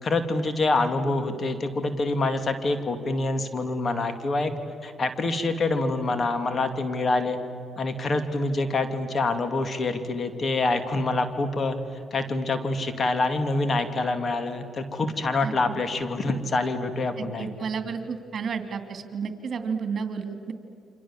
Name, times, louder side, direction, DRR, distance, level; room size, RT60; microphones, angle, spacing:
voice 1, 0.0-4.5 4.8-7.4 7.8-11.8 12.1-17.6, left 2 dB, 45° left, 8 dB, 2.7 m, -26 dB
voice 2, 15.4-15.8 17.2-20.5, right 6 dB, 55° right, 7 dB, 2.9 m, -32 dB
29.5 x 26.0 x 7.5 m, 2.6 s
cardioid pair, 75°, 0 cm